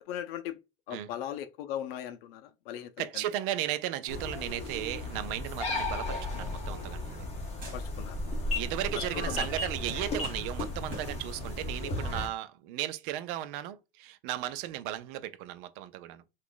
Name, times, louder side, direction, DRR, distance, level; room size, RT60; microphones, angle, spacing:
voice 1, 0.1-0.6 0.9-3.1 7.7-8.2 9.2-9.5, left 11 dB, 80° left, 0.5 m, -38 dB
voice 2, 3.0-7.2 8.5-16.2, right 13 dB, 65° right, 0.5 m, -35 dB
sound 1, 4.1-12.3, left 2 dB, 20° left, 1.0 m, -35 dB
sound 2, 6.0-7.4 7.6-8.3 8.6-11.3, right 1 dB, 25° right, 1.7 m, -47 dB
2.9 x 2.5 x 3.8 m
supercardioid pair, 145°, 29 cm